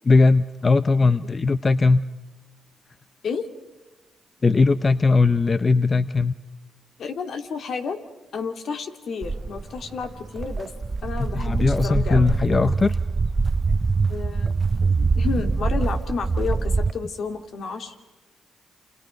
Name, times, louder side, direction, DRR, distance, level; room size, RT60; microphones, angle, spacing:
voice 1, 0.0-2.0 4.4-6.3 11.2-13.0, left 3 dB, 35° left, 13 dB, 0.7 m, -19 dB
voice 2, 7.0-8.0 8.3-10.7 11.0-12.4 14.1-14.5 14.8-17.9, left 5 dB, 65° left, 6 dB, 2.4 m, -31 dB
Walk footsteps, 9.2-16.9, right 4 dB, 35° right, 0.7 m, -24 dB
28.5 x 28.0 x 5.2 m, 1.2 s
cardioid pair, 70°, 0 cm